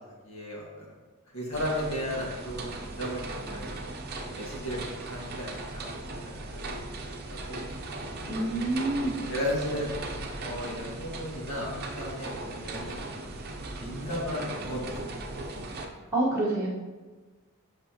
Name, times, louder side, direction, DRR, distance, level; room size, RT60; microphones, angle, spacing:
voice 1, 0.2-0.9 1.3-3.8 4.3-5.9 6.2-6.8 7.2-7.6 9.3-9.9 10.4-13.0 13.8-14.9 15.6-16.1, equal, 70° left, -3 dB, 1.8 m, -35 dB
sound 1, 1.5-15.9, right 2 dB, 45° right, 0.7 m, -38 dB
voice 2, 8.3-9.2 16.1-16.7, right 2 dB, 15° right, -9 dB, 1.4 m, -27 dB
8.0 x 6.0 x 2.9 m, 1.3 s
head